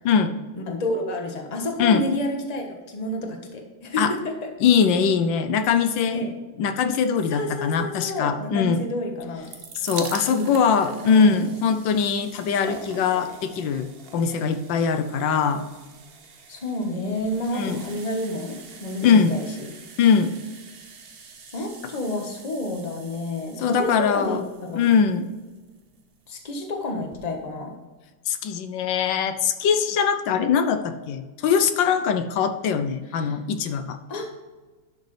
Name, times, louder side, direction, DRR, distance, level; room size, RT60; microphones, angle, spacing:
voice 1, 0.5-4.5 6.1-6.3 7.3-9.5 10.3-10.5 10.8-11.4 16.5-19.7 21.5-24.9 26.3-27.7 33.1-33.4 34.1-34.3, left 2 dB, 25° left, 3 dB, 1.2 m, -30 dB
voice 2, 4.6-6.3 6.6-8.8 9.8-15.6 17.5-17.8 19.0-19.3 20.0-20.3 23.6-24.4 24.7-25.3 28.3-34.0, left 6 dB, 80° left, 9 dB, 1.4 m, -22 dB
sound 1, 9.2-26.2 27.0-27.1 27.3-27.4, right 5 dB, 45° right, 0.8 m, -43 dB
11.5 x 6.6 x 3.3 m, 1.3 s
omnidirectional pair, 2.0 m